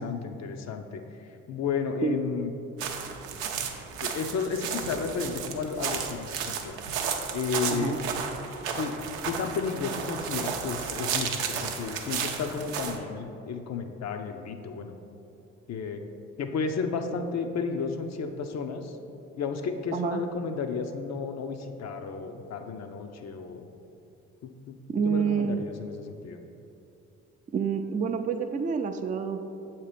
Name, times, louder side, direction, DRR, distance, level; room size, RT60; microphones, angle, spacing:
voice 1, 0.0-2.5 4.0-6.7 7.3-7.9 8.8-8.9 9.3-15.0 15.7-16.0 16.4-19.0 19.4-23.7 24.4-24.8 25.0-26.4, left 5 dB, 50° left, 6 dB, 0.6 m, -33 dB
sound 1, 2.8-13.0, right 6 dB, 85° right, 0.6 m, -33 dB
voice 2, 24.9-25.6 27.5-29.4, right 6 dB, 25° right, 6 dB, 0.4 m, -28 dB
7.2 x 2.9 x 5.0 m, 2.8 s
hypercardioid pair, 55°, 33 cm